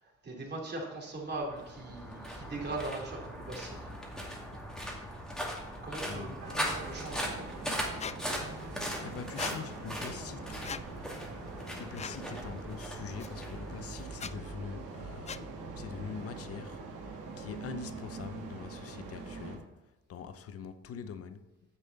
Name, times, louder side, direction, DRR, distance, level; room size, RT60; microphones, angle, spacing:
voice 1, 0.0-3.8 5.8-7.5, right 2 dB, 35° right, 2.9 m, -40 dB
sound 1, 1.3-14.7, equal, ahead, 2.4 m, -39 dB
voice 2, 6.0-6.4 9.0-10.7 11.7-19.7 20.1-21.5, left 6 dB, 50° left, 0.8 m, -44 dB
sound 2, 6.4-19.6, right 3 dB, 90° right, 2.1 m, -44 dB
Squeak, 8.0-8.2 9.4-9.5 10.6-10.8 11.9-12.2 13.2-13.3 14.1-14.3 15.3-15.4, left 6 dB, 25° left, 0.3 m, -39 dB
9.7 x 7.1 x 4.0 m
cardioid pair, 90°, 30 cm